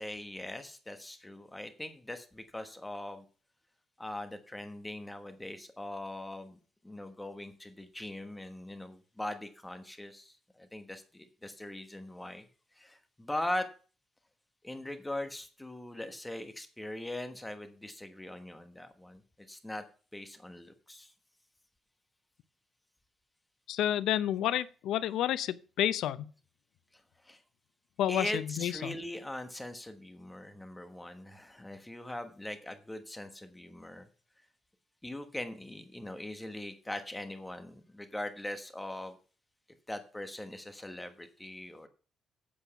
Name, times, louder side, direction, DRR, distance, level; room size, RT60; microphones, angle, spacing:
voice 1, 0.0-3.2 4.0-6.6 6.8-12.5 12.8-13.7 14.6-19.2 19.5-19.8 20.1-21.1 27.2-27.4 28.1-34.1 35.0-39.2 39.9-41.9, left 1 dB, 10° left, 1.2 m, -41 dB
voice 2, 23.7-26.3 28.0-28.9, left 12 dB, 90° left, 0.7 m, -30 dB
8.7 x 7.4 x 6.9 m
cardioid pair, 140°, 0 cm